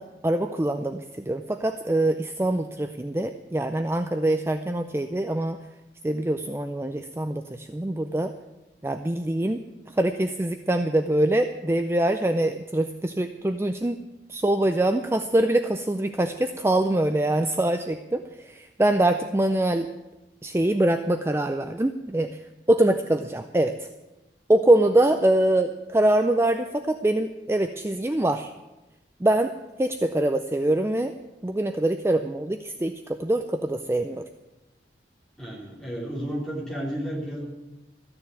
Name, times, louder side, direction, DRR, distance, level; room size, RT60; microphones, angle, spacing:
voice 1, 0.0-5.6 6.0-8.3 8.8-9.6 10.0-14.0 14.3-19.9 20.4-22.4 22.7-23.7 24.5-28.5 29.2-29.5 29.8-31.1 31.4-34.3, right 1 dB, 15° right, 7 dB, 0.4 m, -24 dB
voice 2, 35.4-37.4, equal, 5° left, -4 dB, 3.1 m, -32 dB
13.5 x 6.9 x 9.1 m, 1.0 s
head